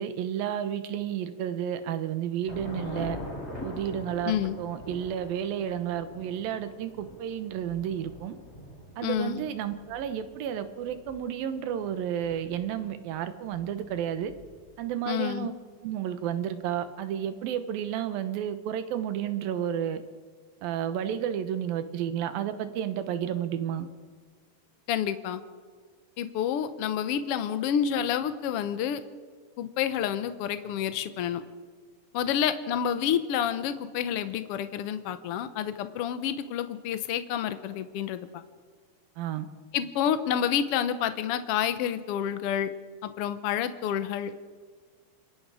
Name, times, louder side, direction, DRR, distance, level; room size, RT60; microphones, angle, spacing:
voice 1, 0.0-3.2 3.6-8.3 9.0-14.3 14.8-15.5 15.8-20.0 20.6-23.9 39.2-39.5, right 9 dB, 90° right, 10 dB, 3.0 m, -31 dB
Thunder / Rain, 2.5-15.0, left 1 dB, 20° left, 4.8 m, -44 dB
voice 2, 4.2-4.6 9.0-9.4 15.1-15.5 24.9-25.4 26.2-29.0 29.6-31.4 32.1-38.4 39.7-42.7 43.0-44.4, left 9 dB, 85° left, 11 dB, 1.3 m, -29 dB
27.5 x 22.0 x 5.0 m, 1.5 s
omnidirectional pair, 4.0 m